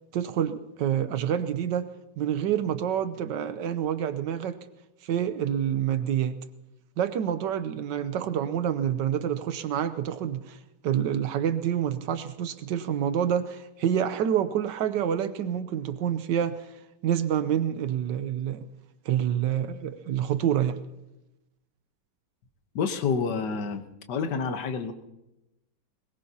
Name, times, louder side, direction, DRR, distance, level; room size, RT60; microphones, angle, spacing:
voice 1, 0.1-1.9 2.2-4.6 5.0-6.3 7.0-10.6 10.8-16.7 17.0-18.7 19.0-20.8, right 9 dB, 80° right, 12 dB, 1.4 m, -27 dB
voice 2, 22.8-23.8 24.1-24.9, left 5 dB, 70° left, 8 dB, 1.7 m, -28 dB
21.5 x 21.0 x 2.8 m, 0.94 s
omnidirectional pair, 1.9 m